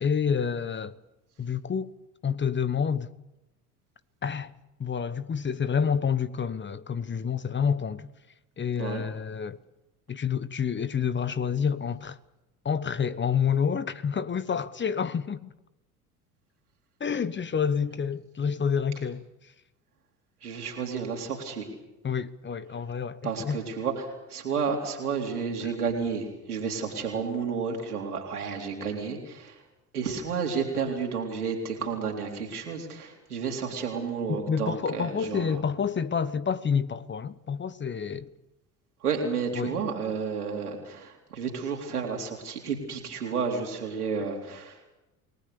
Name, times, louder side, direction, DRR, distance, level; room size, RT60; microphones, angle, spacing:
voice 1, 0.0-1.0 1.4-1.9 2.2-3.1 4.2-4.5 4.8-8.1 8.6-9.6 10.1-12.2 12.6-15.5 17.0-19.5 22.0-23.6 25.6-25.7 34.3-38.3 39.5-39.8, left 7 dB, 25° left, 1.2 m, -28 dB
voice 2, 20.4-21.7 23.2-29.6 29.9-35.6 39.0-44.9, right 5 dB, 90° right, 3.9 m, -31 dB
29.0 x 19.5 x 7.0 m
hypercardioid pair, 70°, 44 cm